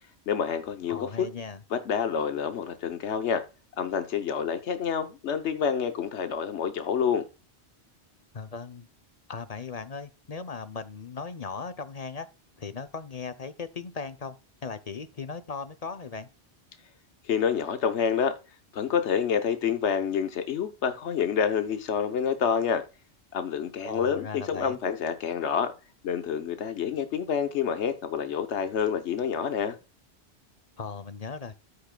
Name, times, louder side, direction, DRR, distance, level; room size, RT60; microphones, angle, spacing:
voice 1, 0.3-1.3 1.7-3.4 3.8-7.2 17.2-18.4 18.7-22.8 23.3-25.7 26.0-29.8, left 7 dB, 85° left, 1.2 m, -28 dB
voice 2, 0.9-1.6 8.3-8.9 9.3-12.3 12.6-14.4 14.6-16.3 23.8-24.8 30.8-31.5, left 4 dB, 40° left, 0.7 m, -38 dB
13.0 x 6.6 x 2.3 m
omnidirectional pair, 1.1 m